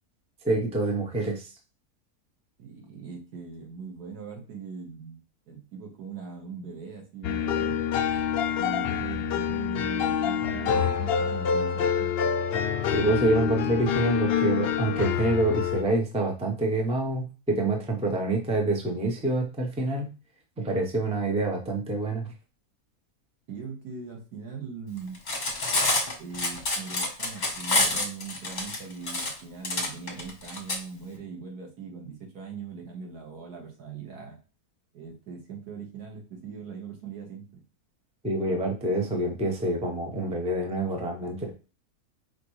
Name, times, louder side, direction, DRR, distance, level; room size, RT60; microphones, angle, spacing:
voice 1, 0.4-1.5 12.9-20.1 20.6-22.3 38.2-41.5, right 2 dB, 5° right, 1 dB, 0.5 m, -27 dB
voice 2, 2.6-7.9 8.6-12.1 23.5-25.2 26.2-34.4 34.9-37.6, right 5 dB, 85° right, 1 dB, 1.9 m, -40 dB
sound 1, 7.2-15.8, left 7 dB, 75° left, 0.5 m, -26 dB
Cutlery silverware, 25.1-30.8, left 2 dB, 30° left, 1.1 m, -27 dB
5.0 x 3.1 x 3.1 m, 0.33 s
omnidirectional pair, 1.6 m